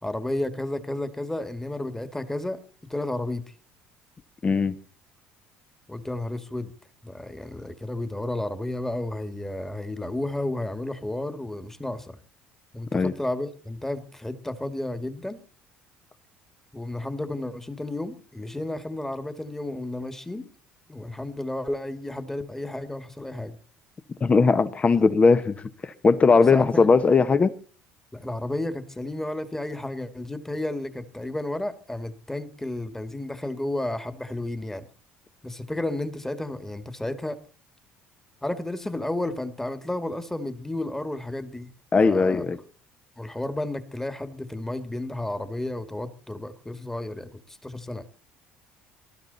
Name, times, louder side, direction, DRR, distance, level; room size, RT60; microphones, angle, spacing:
voice 1, 0.0-2.6 2.9-3.5 5.9-6.7 7.0-12.2 12.7-15.4 16.7-20.5 20.9-23.6 26.5-26.9 28.1-34.9 35.4-37.4 38.4-41.7 42.0-42.4 43.2-48.0, left 1 dB, 10° left, 2.0 m, -32 dB
voice 2, 4.4-4.7 12.9-13.1 24.2-25.6 25.8-27.5 41.9-42.6, left 4 dB, 30° left, 1.2 m, -19 dB
19.0 x 12.5 x 4.1 m
supercardioid pair, 80°, 4 cm